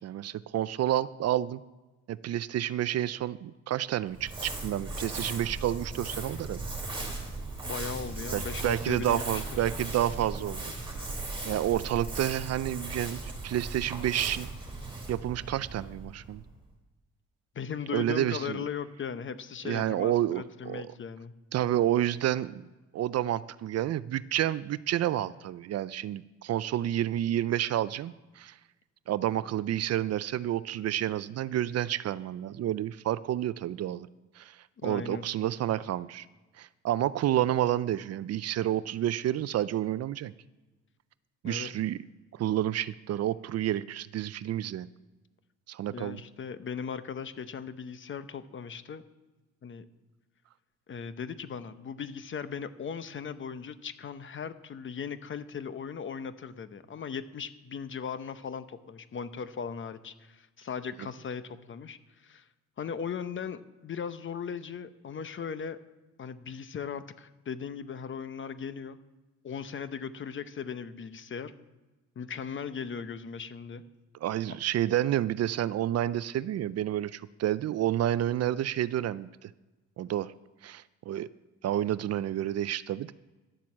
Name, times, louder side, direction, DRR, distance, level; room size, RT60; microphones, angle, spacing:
voice 1, 0.0-1.6 2.1-6.6 8.3-10.6 11.5-14.5 15.1-16.4 17.9-18.7 19.6-20.9 21.5-22.6 22.9-28.6 29.1-34.1 34.4-36.3 36.6-40.3 41.4-42.0 42.3-44.9 45.7-46.2 74.2-79.5 80.0-80.3 80.6-81.3 81.6-83.1, right 12 dB, 55° right, 17 dB, 0.5 m, -29 dB
Crumpling crinkling, 4.1-16.6, right 2 dB, 15° right, 3.3 m, -37 dB
voice 2, 7.6-9.4 17.5-21.3 34.8-35.2 41.4-41.7 45.9-49.0 49.6-49.9 50.9-62.5 62.8-65.8 66.2-69.0 69.4-71.5 72.2-73.8 74.5-74.6, left 6 dB, 40° left, 13 dB, 0.8 m, -38 dB
11.5 x 7.5 x 7.4 m, 1.2 s
cardioid pair, 90°, 30 cm